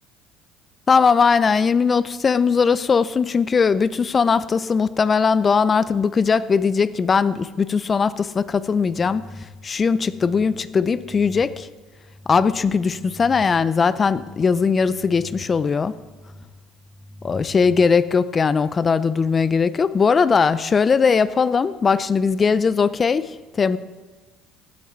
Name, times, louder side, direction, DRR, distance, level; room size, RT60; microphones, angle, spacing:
voice 1, 0.9-9.3 9.6-11.7 12.3-15.9 17.2-23.3 23.6-23.8, left 5 dB, 35° left, 17 dB, 0.6 m, -19 dB
sound 1, 8.7-17.9, left 1 dB, 5° left, 2.4 m, -44 dB
16.0 x 9.3 x 4.6 m, 1.4 s
supercardioid pair, 80°, 0 cm